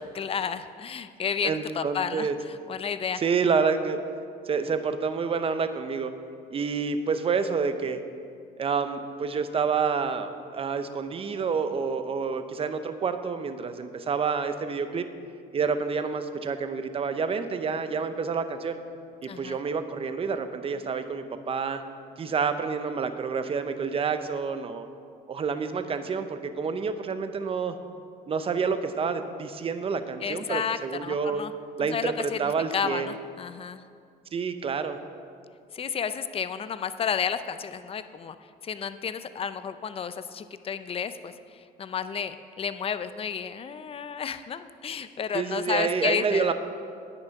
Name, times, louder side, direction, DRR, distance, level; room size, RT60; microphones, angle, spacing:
voice 1, 0.0-3.2 19.3-19.6 30.2-31.5 31.8-33.8 35.7-38.4 38.6-46.5, left 7 dB, 35° left, 12 dB, 0.6 m, -32 dB
voice 2, 1.4-2.4 3.2-4.0 4.5-6.1 6.5-8.0 8.6-15.1 15.5-18.8 19.2-21.8 22.2-24.9 25.3-27.8 28.3-31.4 31.8-33.1 34.3-35.0 45.3-46.5, right 5 dB, 35° right, 9 dB, 0.8 m, -28 dB
9.7 x 9.0 x 5.9 m, 2.3 s
cardioid pair, 110°, 17 cm